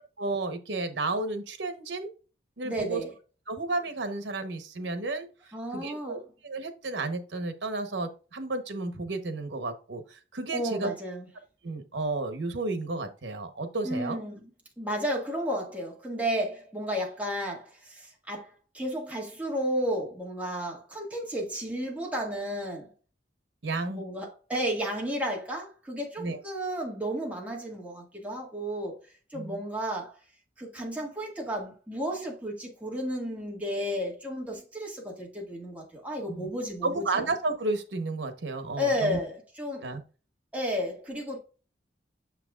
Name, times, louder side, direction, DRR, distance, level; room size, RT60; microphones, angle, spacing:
voice 1, 0.2-2.1 2.6-3.0 3.5-10.9 11.6-14.2 23.6-24.0 26.2-26.4 29.3-29.6 36.3-36.5 36.8-39.2 39.8-40.0, right 3 dB, 90° right, 1.0 m, -32 dB
voice 2, 2.6-3.1 5.5-6.2 10.5-11.3 13.8-14.5 14.8-22.9 23.9-29.0 29.3-30.2 30.6-37.0 38.8-39.9 40.5-41.4, equal, 10° right, 1.8 m, -32 dB
6.6 x 6.0 x 2.4 m
head